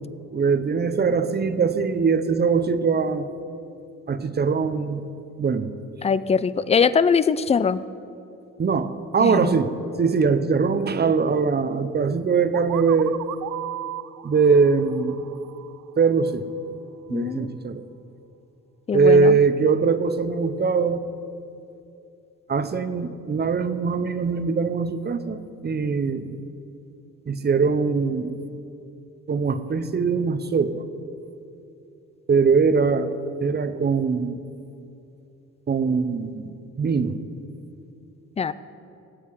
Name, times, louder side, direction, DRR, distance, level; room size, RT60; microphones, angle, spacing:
voice 1, 0.3-3.3 4.1-5.1 5.4-5.7 8.6-13.2 14.2-15.2 16.0-16.4 17.1-17.8 18.9-21.0 22.5-26.4 27.3-28.3 29.3-30.8 32.3-33.1 33.4-34.4 35.7-37.2, right 5 dB, 35° right, 11 dB, 0.7 m, -22 dB
voice 2, 6.0-7.8 9.2-9.6 17.1-17.5 18.9-19.4 38.4-38.5, left 6 dB, 20° left, 16 dB, 0.4 m, -22 dB
sound 1, 12.5-16.3, right 14 dB, 70° right, 0.4 m, -36 dB
18.0 x 8.2 x 4.7 m, 2.7 s
cardioid pair, 90°, 30 cm